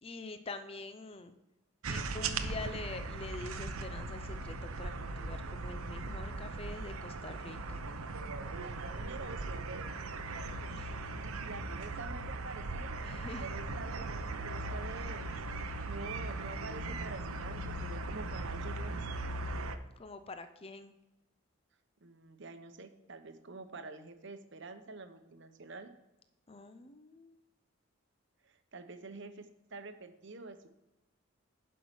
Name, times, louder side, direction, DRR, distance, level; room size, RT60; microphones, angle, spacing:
voice 1, 0.0-1.4 1.9-7.8 10.6-11.0 13.0-13.6 20.0-20.9 26.5-27.4, left 3 dB, 25° left, 9 dB, 0.5 m, -45 dB
sound 1, 1.8-19.8, right 2 dB, 85° right, 0.8 m, -39 dB
voice 2, 8.6-10.7 11.2-12.9 13.4-14.1 14.4-15.3 15.9-19.1 22.0-25.9 28.4-30.7, right 3 dB, 55° right, 8 dB, 0.9 m, -47 dB
11.0 x 5.6 x 6.0 m, 0.94 s
head